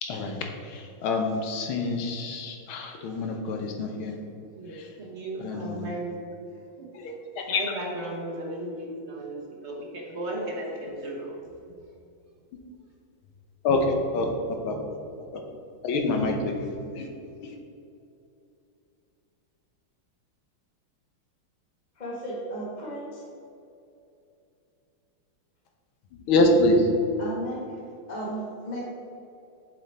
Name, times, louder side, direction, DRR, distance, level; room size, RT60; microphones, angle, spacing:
voice 1, 0.0-4.2 4.8-4.9 5.4-5.8 7.0-7.6 13.6-14.8 15.3-15.4 15.8-17.1 17.4-17.5 26.3-26.9, left 2 dB, 75° left, 3 dB, 1.6 m, -26 dB
voice 2, 4.5-6.2 6.8-6.9 7.5-11.3, right 1 dB, 45° right, -1 dB, 0.9 m, -35 dB
voice 3, 22.0-23.2 27.2-27.8 28.1-28.8, right 1 dB, 25° left, -5 dB, 1.3 m, -35 dB
7.4 x 5.5 x 4.2 m, 2.6 s
omnidirectional pair, 2.4 m